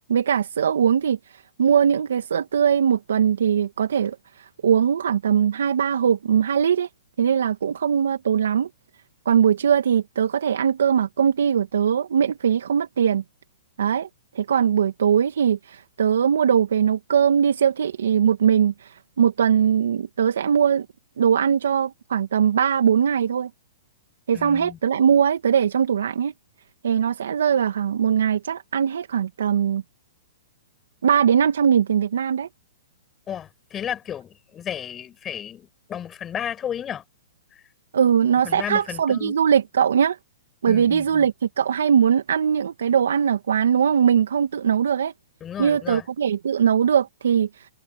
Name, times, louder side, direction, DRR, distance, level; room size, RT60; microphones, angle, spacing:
voice 1, 0.1-6.9 7.2-8.7 9.3-13.2 13.8-14.1 14.3-20.9 21.2-23.5 24.3-26.3 26.8-29.8 31.0-32.5 37.9-40.2 40.6-45.1 45.6-47.7, right 8 dB, 80° right, 2.0 m, -21 dB
voice 2, 24.3-24.8 33.3-37.0 37.5-37.6 38.4-39.3 40.7-41.3 45.4-46.0, left 9 dB, 20° left, 6.3 m, -33 dB
hypercardioid pair, 130°, 0 cm